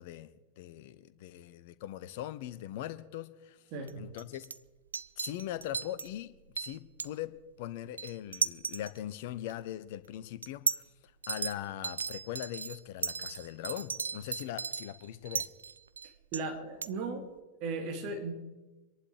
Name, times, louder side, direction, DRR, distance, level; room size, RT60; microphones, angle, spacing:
voice 1, 0.0-3.6 4.0-4.5 5.2-10.8 11.3-15.5, left 12 dB, 50° left, 14 dB, 0.9 m, -41 dB
sound 1, 3.9-4.0 4.2-4.6 4.9-6.1 6.6-7.1 8.0-9.0 9.5-9.6 10.4-10.8 11.2-11.5 11.8-16.4 16.8-16.9, right 5 dB, 75° right, 0.5 m, -35 dB
voice 2, 16.3-17.3 17.6-18.3, right 3 dB, 40° right, 4 dB, 3.1 m, -36 dB
25.5 x 11.5 x 4.9 m, 1.1 s
figure-of-eight pair, 90°, 0 cm